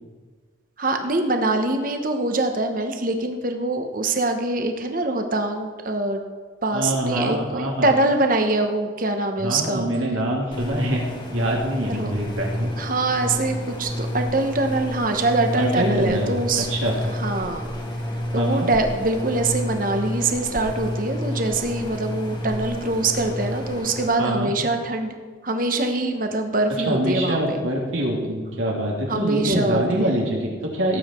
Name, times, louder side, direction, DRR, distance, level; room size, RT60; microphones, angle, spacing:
voice 1, 0.8-6.2 6.6-9.9 11.9-12.1 12.7-16.7 17.1-17.7 18.3-25.1 25.4-27.6 29.1-30.1, right 2 dB, 45° right, 5 dB, 1.2 m, -24 dB
voice 2, 6.7-7.9 9.4-11.0 11.3-12.7 15.6-16.3 16.6-16.9 18.4-18.7 24.2-24.5 26.9-31.0, right 1 dB, 85° right, -1 dB, 3.1 m, -24 dB
sound 1, 10.5-24.1, equal, 25° left, 1.6 m, -30 dB
17.5 x 8.2 x 4.5 m, 1.5 s
head